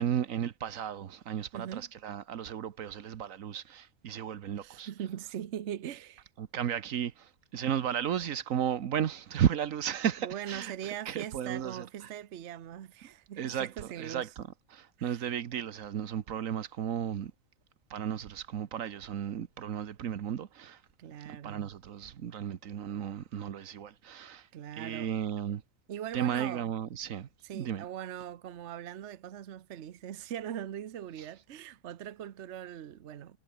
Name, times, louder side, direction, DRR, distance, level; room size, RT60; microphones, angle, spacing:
voice 1, 0.0-4.9 6.4-11.9 13.4-14.4 14.7-17.3 17.9-20.8 21.3-24.5 24.8-25.6 26.1-27.3 27.5-27.8, right 9 dB, 80° right, 1.3 m, -34 dB
voice 2, 1.5-1.9 4.6-6.3 10.2-14.3 15.0-15.3 21.0-21.7 24.5-25.1 25.9-26.7 27.4-33.4, right 10 dB, 60° right, 1.1 m, -41 dB
omnidirectional pair, 1.4 m